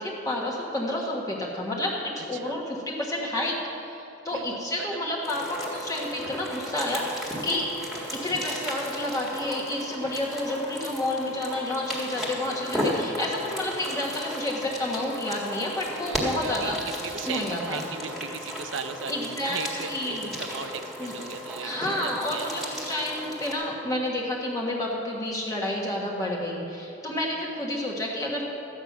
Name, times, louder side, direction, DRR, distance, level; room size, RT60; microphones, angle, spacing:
voice 1, 0.0-3.6 3.9-7.7 8.1-16.8 17.2-17.9 19.1-20.4 21.0-21.1 21.6-28.4, left 1 dB, 20° left, -3 dB, 1.4 m, -30 dB
voice 2, 2.2-2.6 4.3-4.4 4.8-5.0 16.1-16.7 17.0-22.5, right 6 dB, 80° right, 9 dB, 0.6 m, -37 dB
sound 1, 5.2-23.5, equal, ahead, 1.8 m, -35 dB
13.5 x 9.0 x 6.0 m, 2.9 s
head